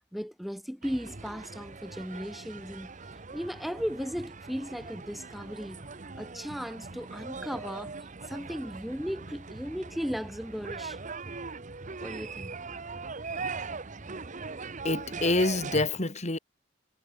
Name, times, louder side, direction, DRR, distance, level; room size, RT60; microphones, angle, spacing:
voice 1, 0.1-2.9 3.3-5.8 6.2-7.9 8.3-11.0 12.0-12.6, equal, ahead, 5.7 m, -36 dB
sound 1, 0.8-15.9, right 4 dB, 40° right, 1.2 m, -40 dB
voice 2, 14.8-16.4, left 2 dB, 35° left, 2.3 m, -27 dB
head